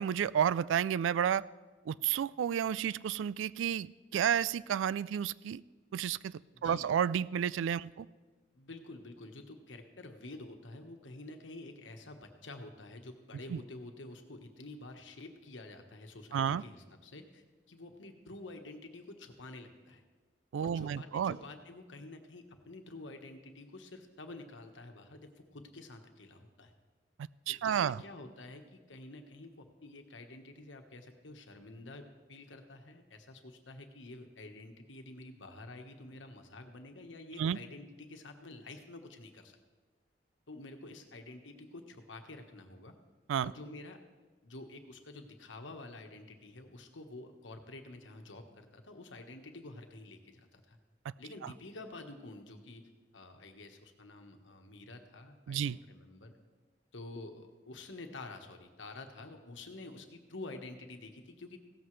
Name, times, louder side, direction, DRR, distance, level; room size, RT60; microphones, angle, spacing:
voice 1, 0.0-1.4 1.9-5.6 5.9-6.3 6.6-8.1 13.5-13.6 16.3-16.6 20.5-21.4 27.5-28.0 37.4-37.6 43.3-43.5 51.4-51.5 55.5-55.8, right 8 dB, 85° right, 19 dB, 0.3 m, -31 dB
voice 2, 6.5-7.0 8.5-20.0 20.6-26.7 27.5-39.6 40.5-42.9 43.4-44.0 44.4-50.8 51.2-56.4 56.9-61.6, left 2 dB, 85° left, 5 dB, 1.3 m, -49 dB
16.5 x 13.5 x 3.2 m, 1.4 s
head